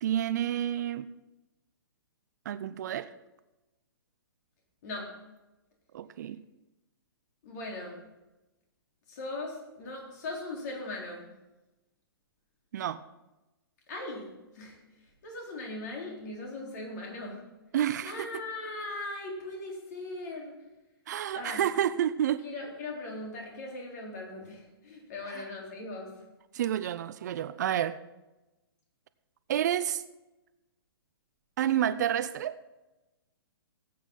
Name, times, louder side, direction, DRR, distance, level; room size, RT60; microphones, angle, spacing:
voice 1, 0.0-1.1 2.5-3.1 5.9-6.4 12.7-13.0 17.7-18.4 21.1-22.4 25.3-25.5 26.5-28.0 29.5-30.0 31.6-32.6, right 10 dB, 45° right, 14 dB, 0.5 m, -29 dB
voice 2, 4.8-5.2 7.4-8.0 9.1-11.3 13.9-14.8 15.2-17.5 18.0-20.6 21.3-21.6 22.4-26.2, left 2 dB, 45° left, 0 dB, 3.7 m, -39 dB
18.0 x 8.6 x 3.9 m, 1.0 s
figure-of-eight pair, 120°, 13 cm